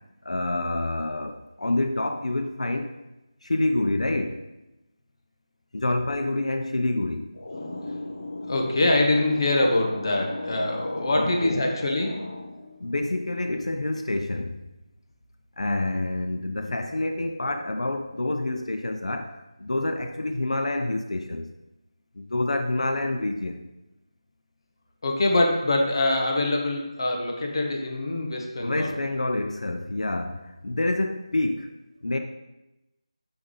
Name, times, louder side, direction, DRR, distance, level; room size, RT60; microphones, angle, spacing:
voice 1, 0.2-2.9 3.4-4.4 5.7-7.3 11.1-11.6 12.8-14.6 15.6-21.5 22.2-23.6 28.6-31.7 32.0-32.2, left 2 dB, 85° left, 6 dB, 0.6 m, -27 dB
voice 2, 7.4-12.9 25.0-28.9, left 2 dB, 45° left, 1 dB, 1.1 m, -25 dB
9.7 x 3.5 x 4.0 m, 0.95 s
figure-of-eight pair, 175°, 3 cm